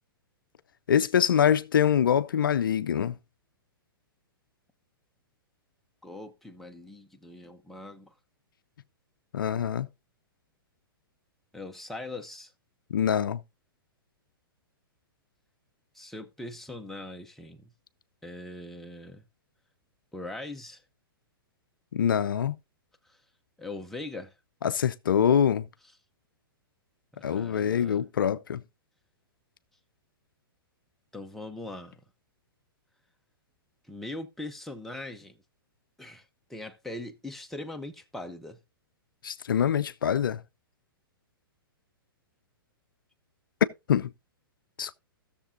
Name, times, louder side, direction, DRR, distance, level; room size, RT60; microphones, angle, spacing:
voice 1, 0.9-3.2 9.3-9.9 12.9-13.4 21.9-22.6 24.6-25.7 27.2-28.6 39.2-40.4 43.9-44.1 44.8-44.9, left 8 dB, 65° left, 0.4 m, -24 dB
voice 2, 6.0-8.1 11.5-12.5 15.9-17.7 18.2-19.2 20.1-20.8 23.1-23.2 23.6-24.3 27.2-28.0 31.1-32.0 33.9-35.4 36.0-38.6, left 2 dB, ahead, 0.6 m, -41 dB
16.5 x 6.8 x 2.6 m
figure-of-eight pair, 110°, 12 cm